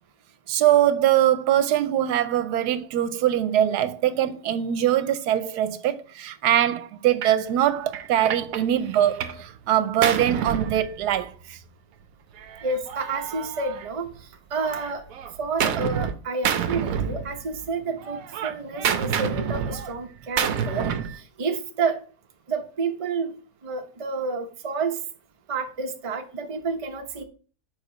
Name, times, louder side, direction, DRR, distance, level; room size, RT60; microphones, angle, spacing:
voice 1, 0.5-11.6 20.8-20.9, right 11 dB, 85° right, 1.2 m, -22 dB
Gunshot gunfire, 7.2-7.4 7.9-9.5 9.7-11.4 12.4-14.2 14.6-16.1 16.4-17.7 18.0-21.2, right 8 dB, 65° right, 1.0 m, -29 dB
voice 2, 12.6-14.1 14.5-15.0 15.4-22.0 22.5-23.3 23.6-25.0 25.5-27.2, right 4 dB, 30° right, 0.6 m, -29 dB
5.3 x 4.9 x 3.9 m
omnidirectional pair, 1.7 m